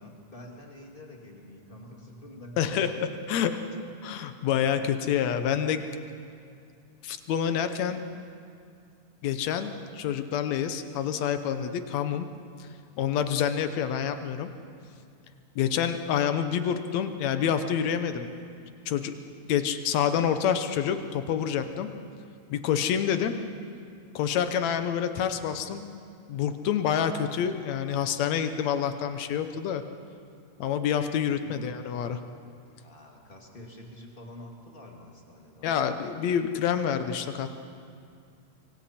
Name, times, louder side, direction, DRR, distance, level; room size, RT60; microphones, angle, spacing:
voice 1, 0.0-3.0 31.4-31.6 32.8-35.7, left 1 dB, 20° left, 0 dB, 1.7 m, -47 dB
voice 2, 2.6-3.6 4.0-5.9 7.0-8.0 9.2-12.3 12.6-12.7 13.0-14.5 15.6-18.3 18.9-19.2 19.5-21.9 22.5-23.4 24.2-25.9 26.3-29.8 30.6-32.2 35.6-37.5, left 8 dB, 70° left, 9 dB, 1.9 m, -27 dB
25.0 x 24.5 x 4.3 m, 2.4 s
omnidirectional pair, 3.8 m